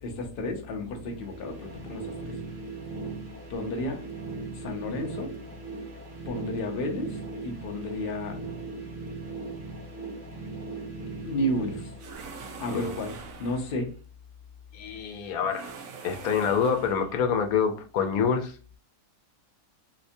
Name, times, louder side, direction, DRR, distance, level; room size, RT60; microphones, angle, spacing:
voice 1, 0.0-2.3 3.5-4.1 4.6-5.3 6.3-8.4 11.2-11.9 12.6-13.9, left 1 dB, 50° left, 0.8 m, -32 dB
sound 1, 0.8-12.8, right 4 dB, 45° right, 0.9 m, -39 dB
sound 2, 12.0-13.8 15.4-17.2, right 5 dB, 70° right, 0.9 m, -43 dB
voice 2, 14.7-15.7 16.0-18.8, left 6 dB, 90° left, 1.1 m, -27 dB
3.3 x 2.9 x 2.6 m
omnidirectional pair, 1.4 m